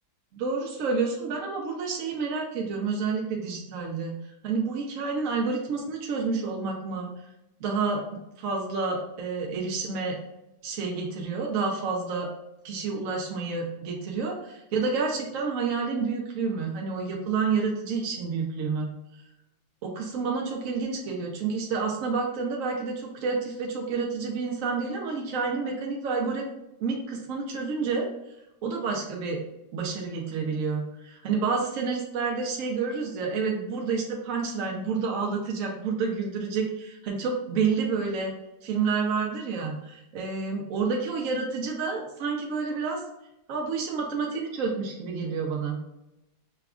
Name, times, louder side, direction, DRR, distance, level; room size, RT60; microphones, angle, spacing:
voice 1, 0.3-4.2 4.4-7.1 7.6-10.2 10.6-12.3 12.6-18.9 19.8-26.4 26.8-28.1 28.6-29.4 29.7-38.3 38.6-43.0 43.5-45.8, right 4 dB, 65° right, 0 dB, 0.9 m, -29 dB
5.8 x 2.2 x 2.4 m, 0.90 s
omnidirectional pair, 1.7 m